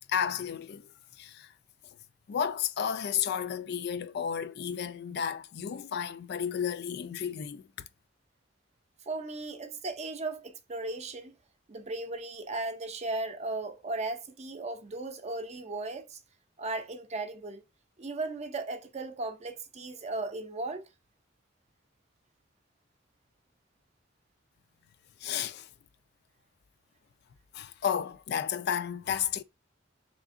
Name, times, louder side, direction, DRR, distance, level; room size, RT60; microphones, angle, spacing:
voice 1, 0.1-0.9 1.2-1.5 2.3-7.6 25.2-25.7 27.5-29.4, left 8 dB, 60° left, 0.3 m, -32 dB
voice 2, 9.1-11.3 11.7-16.2 16.6-17.6 18.0-20.9, right 2 dB, 35° right, 0.5 m, -36 dB
3.6 x 3.4 x 2.5 m
head